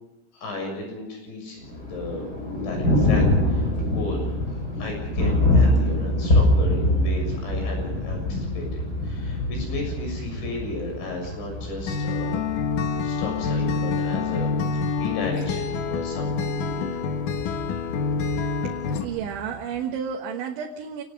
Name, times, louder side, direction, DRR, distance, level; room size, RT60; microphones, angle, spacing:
voice 1, 0.3-2.3 2.6-4.4 4.8-12.4 13.0-14.5 14.9-17.1, left 2 dB, 75° left, 3 dB, 9.2 m, -34 dB
Thunder, 1.6-19.6, left 1 dB, 20° left, 4.7 m, -25 dB
Acoustic guitar, 11.9-19.0, left 5 dB, 60° left, 2.4 m, -27 dB
voice 2, 18.6-21.0, right 7 dB, 85° right, 1 dB, 3.9 m, -32 dB
29.5 x 19.0 x 5.4 m, 0.90 s
omnidirectional pair, 5.3 m